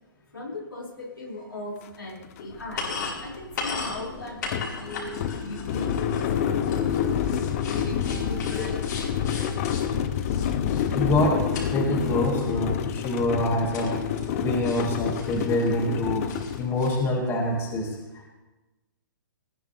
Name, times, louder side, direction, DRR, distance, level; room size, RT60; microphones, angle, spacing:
voice 1, 0.3-3.0 3.2-6.3 6.6-6.9 7.6-8.9, left 2 dB, 85° left, -5 dB, 5.9 m, -38 dB
sound 1, 1.8-1.9 2.2-17.0, left 8 dB, 40° left, 1.1 m, -28 dB
sound 2, 2.5-11.7 11.9-12.5 12.9-13.0 13.7-14.4 14.6-15.9 16.3-17.0, left 4 dB, 60° left, 4.8 m, -37 dB
voice 2, 10.9-11.4 11.7-14.0 14.4-16.3 16.6-18.0, left 1 dB, 20° left, 0 dB, 2.3 m, -25 dB
20.0 x 14.0 x 3.5 m, 1.1 s
figure-of-eight pair, 125°, 11 cm